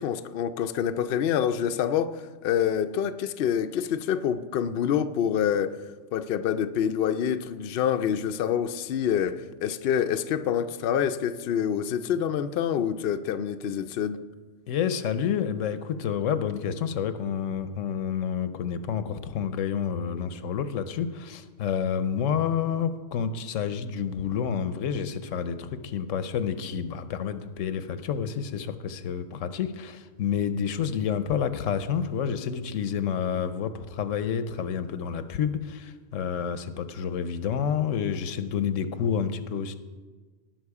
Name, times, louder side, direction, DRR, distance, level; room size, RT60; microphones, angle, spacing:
voice 1, 0.0-5.8 6.1-14.2, left 9 dB, 60° left, 0.7 m, -27 dB
voice 2, 14.7-39.7, left 7 dB, 80° left, 1.0 m, -29 dB
18.0 x 6.1 x 4.8 m
omnidirectional pair, 1.3 m